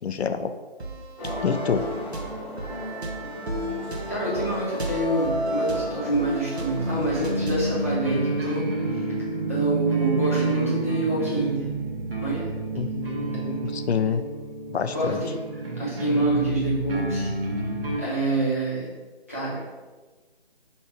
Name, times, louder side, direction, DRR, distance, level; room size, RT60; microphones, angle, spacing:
voice 1, 0.0-0.5 1.4-1.9 12.7-14.2 14.7-15.2, left 6 dB, 85° left, 10 dB, 0.5 m, -27 dB
sound 1, 0.8-7.8, right 1 dB, 90° right, 0.9 m, -35 dB
sound 2, 1.2-7.7, equal, 25° left, 0.9 m, -33 dB
voice 2, 4.1-9.0 9.5-11.7 12.2-12.5 14.9-15.3 15.8-17.3 18.0-18.9 19.3-19.6, right 2 dB, 15° right, -9 dB, 0.6 m, -26 dB
sound 3, 6.8-18.0, right 2 dB, 65° right, 1.1 m, -29 dB
3.1 x 2.9 x 4.5 m, 1.3 s
figure-of-eight pair, 165°, 31 cm